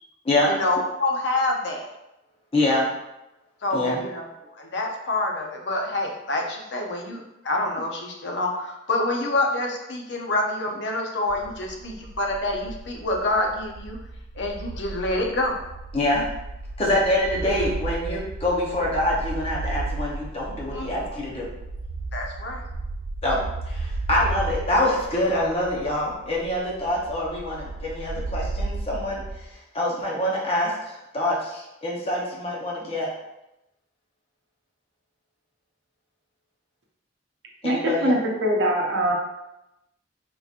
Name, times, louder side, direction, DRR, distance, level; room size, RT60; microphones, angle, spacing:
voice 1, 0.5-1.9 3.6-14.0 14.3-15.5 20.7-21.2 22.1-22.6, left 2 dB, 65° left, 1 dB, 0.6 m, -27 dB
voice 2, 2.5-2.9 3.7-4.0 15.9-16.2 16.8-21.5 23.2-29.2 29.7-31.4 31.8-33.1 37.6-38.1, left 1 dB, 30° left, -4 dB, 0.8 m, -25 dB
sound 1, 11.3-29.5, right 2 dB, 50° right, 0.3 m, -34 dB
voice 3, 37.6-39.1, right 1 dB, 75° right, -1 dB, 0.7 m, -23 dB
3.7 x 2.9 x 2.4 m, 0.91 s
head